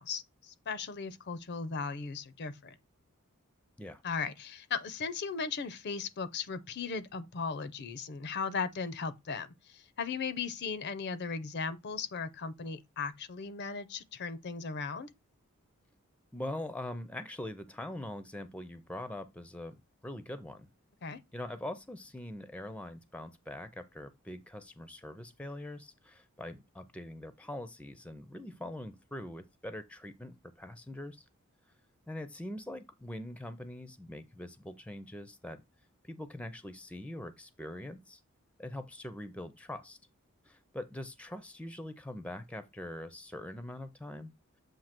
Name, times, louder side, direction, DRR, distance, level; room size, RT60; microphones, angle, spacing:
voice 1, 0.0-2.7 4.0-15.1 21.0-21.2, left 5 dB, 50° left, 0.6 m, -37 dB
voice 2, 16.3-20.7 21.3-31.2 32.1-35.6 36.0-38.2 38.6-40.0 40.5-44.3, left 1 dB, 5° left, 0.5 m, -43 dB
7.4 x 2.8 x 5.8 m
head